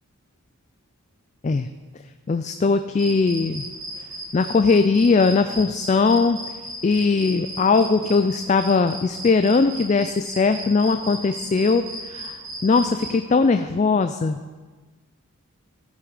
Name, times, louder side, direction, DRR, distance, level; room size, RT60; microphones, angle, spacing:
voice 1, 2.3-3.6 4.3-6.4 6.8-12.4 12.6-14.4, left 4 dB, 30° left, 9 dB, 0.3 m, -20 dB
sound 1, 2.9-13.1, right 1 dB, 20° right, 2.3 m, -36 dB
14.5 x 7.8 x 4.9 m, 1.3 s
head